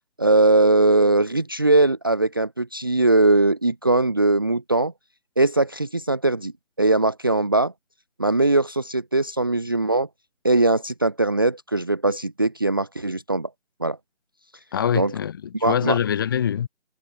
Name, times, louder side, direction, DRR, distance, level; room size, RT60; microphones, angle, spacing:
voice 1, 0.2-4.9 5.4-6.5 6.8-7.7 8.2-10.1 10.4-13.5 13.8-14.0 14.9-15.1 15.6-16.0, right 2 dB, 15° right, 0.9 m, -20 dB
voice 2, 14.7-16.7, left 9 dB, 15° left, 1.9 m, -24 dB
figure-of-eight pair, 160°, 39 cm